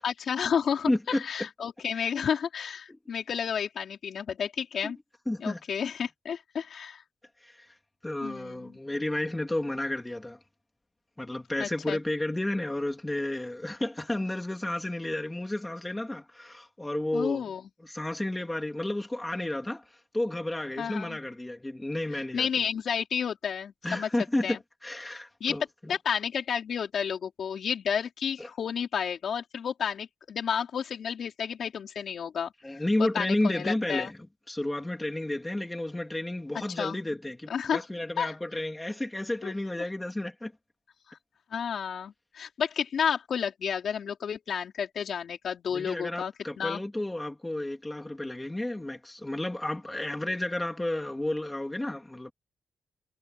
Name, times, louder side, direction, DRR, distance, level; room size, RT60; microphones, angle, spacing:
voice 1, 0.0-5.0 5.4-7.0 8.2-8.8 11.6-12.0 17.1-17.6 20.8-21.2 22.3-24.1 24.4-24.6 25.4-25.6 25.9-34.1 36.8-37.0 37.5-37.8 38.2-38.3 39.4-39.5 41.1-41.2 41.5-46.8, left 7 dB, 55° left, 4.6 m, -31 dB
voice 2, 0.9-1.2 1.9-2.1 2.9-3.0 4.8-4.9 5.3-5.6 7.4-7.7 8.0-10.4 11.2-17.5 17.8-22.6 23.8-24.6 24.8-25.6 28.4-28.5 32.6-34.2 34.5-40.5 45.7-52.3, left 1 dB, 10° left, 3.2 m, -32 dB
wide cardioid pair, 160°, 0 cm